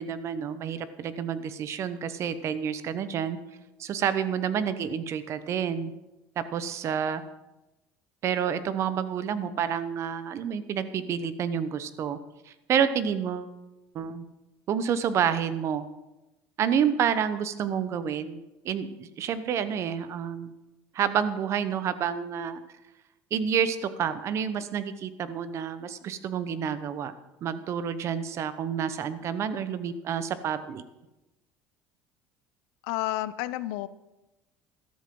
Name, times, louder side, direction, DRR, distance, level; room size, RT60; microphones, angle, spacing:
voice 1, 0.0-3.4 3.8-5.9 6.4-7.2 8.2-12.2 12.5-13.5 13.9-14.2 14.7-15.9 16.6-18.4 18.6-20.5 20.9-22.6 23.3-27.1 27.4-30.8, right 8 dB, 45° right, 13 dB, 0.9 m, -29 dB
voice 2, 32.8-33.9, left 15 dB, 85° left, 16 dB, 0.6 m, -30 dB
13.5 x 12.5 x 3.8 m, 1.0 s
cardioid pair, 120°, 7 cm